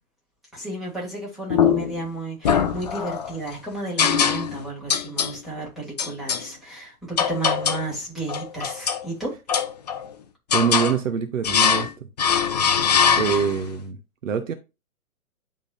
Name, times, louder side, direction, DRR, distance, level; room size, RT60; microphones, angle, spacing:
voice 1, 0.5-9.3, right 2 dB, ahead, 2.7 m, -33 dB
sound 1, 1.5-2.0 2.4-3.3 4.0-4.6 4.9-5.4 6.0-6.4 7.2-7.9 8.3-9.0 9.5-10.1 10.5-11.0 11.4-11.9 12.2-13.7, left 7 dB, 30° left, 0.5 m, -22 dB
voice 2, 10.5-11.9 13.2-14.5, right 7 dB, 60° right, 0.9 m, -24 dB
10.5 x 3.7 x 2.5 m
figure-of-eight pair, 125°, 44 cm